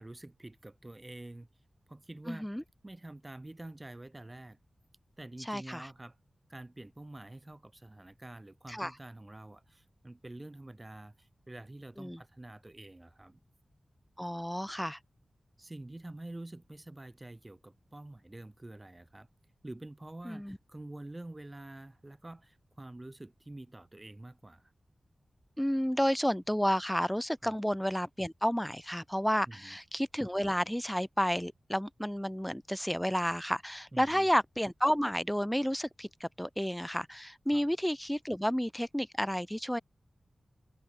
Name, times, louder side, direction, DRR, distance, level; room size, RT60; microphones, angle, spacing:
voice 1, 0.0-1.5 1.9-2.5 2.8-4.6 5.2-6.2 6.5-13.4 15.6-19.3 19.6-24.7 27.4-27.6 29.4-29.8 33.9-34.3 37.5-37.7, right 2 dB, 20° right, 5.4 m, -47 dB
voice 2, 2.3-2.6 5.5-5.9 8.7-8.9 12.0-12.2 14.2-15.0 20.3-20.6 25.6-39.8, equal, 5° left, 0.5 m, -31 dB
wide cardioid pair, 120°, 0 cm